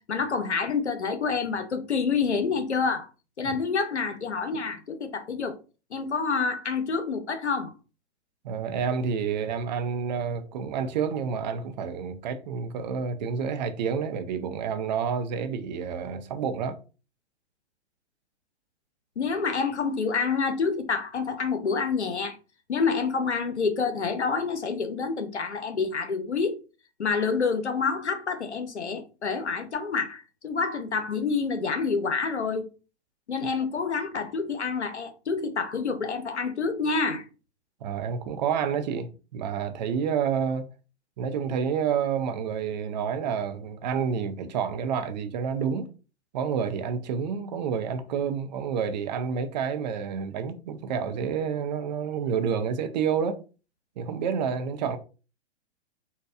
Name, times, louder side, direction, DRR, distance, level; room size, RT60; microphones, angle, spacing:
voice 1, 0.1-3.1 3.4-5.5 5.9-7.7 19.2-22.4 22.7-26.6 27.0-32.7 33.3-37.3, left 5 dB, 90° left, 0.7 m, -28 dB
voice 2, 8.4-16.8 37.8-40.7 41.2-45.9 46.3-53.4 54.0-55.0, right 7 dB, 40° right, 0.5 m, -29 dB
4.1 x 2.2 x 2.4 m
figure-of-eight pair, 110°, 33 cm